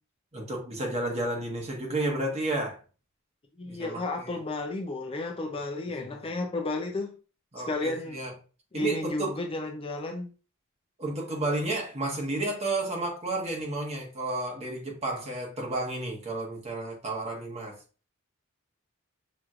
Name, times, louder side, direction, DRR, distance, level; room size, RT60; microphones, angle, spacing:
voice 1, 0.3-2.8 3.6-4.4 7.5-8.3 8.7-9.4 11.0-17.8, right 2 dB, 30° right, 1.4 m, -32 dB
voice 2, 3.6-7.2 7.7-8.2 8.7-10.3, left 2 dB, 25° left, 0.5 m, -32 dB
6.0 x 3.0 x 2.4 m
head